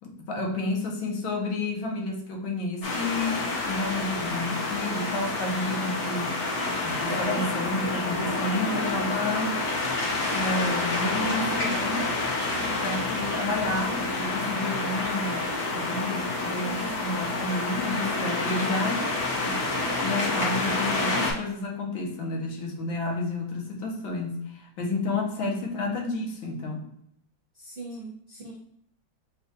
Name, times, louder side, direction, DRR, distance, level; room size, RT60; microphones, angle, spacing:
voice 1, 0.0-6.4 6.8-9.6 10.3-12.3 12.6-19.1 19.4-19.7 20.0-26.9, left 2 dB, 80° left, 0 dB, 1.7 m, -31 dB
sound 1, 2.8-21.3, left 2 dB, 45° left, 1.1 m, -28 dB
voice 2, 16.6-17.0 25.3-25.8 27.5-28.6, right 2 dB, 40° right, -8 dB, 0.8 m, -40 dB
6.9 x 2.4 x 2.7 m, 0.73 s
omnidirectional pair, 2.2 m